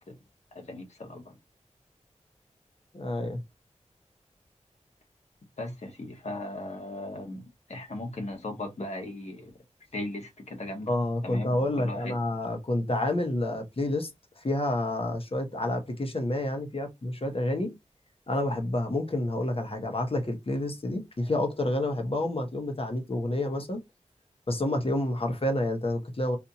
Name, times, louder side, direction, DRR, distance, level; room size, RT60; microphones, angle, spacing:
voice 1, 0.5-1.4 5.6-7.4 7.7-9.5 9.9-10.9 11.2-11.5 11.8-12.1, left 1 dB, 65° left, 1.5 m, -37 dB
voice 2, 2.9-3.4 10.9-14.1 14.4-17.8 18.3-23.8 24.5-26.4, left 1 dB, 50° left, 1.1 m, -29 dB
4.3 x 2.5 x 2.8 m
cardioid pair, 45°, 12 cm